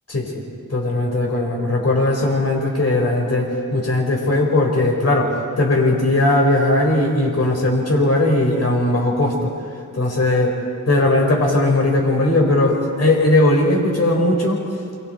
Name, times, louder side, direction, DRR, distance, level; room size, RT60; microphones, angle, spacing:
voice 1, 0.7-9.5 9.9-10.5 10.9-14.6, left 2 dB, 50° left, 0 dB, 5.0 m, -18 dB
29.0 x 22.5 x 4.6 m, 2.5 s
cardioid pair, 70°, 33 cm